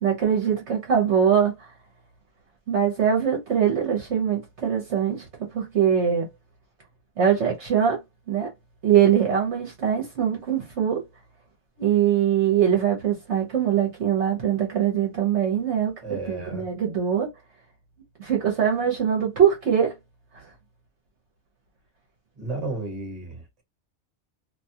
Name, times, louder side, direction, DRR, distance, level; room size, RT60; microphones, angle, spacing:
voice 1, 0.0-1.7 2.7-6.3 7.2-8.0 8.3-8.5 8.8-11.0 11.8-17.3 18.2-19.9 20.3-20.4, right 8 dB, 60° right, 1.0 m, -22 dB
voice 2, 16.0-16.7 22.4-23.6, right 2 dB, 30° right, 1.1 m, -33 dB
2.7 x 2.2 x 2.7 m
omnidirectional pair, 1.4 m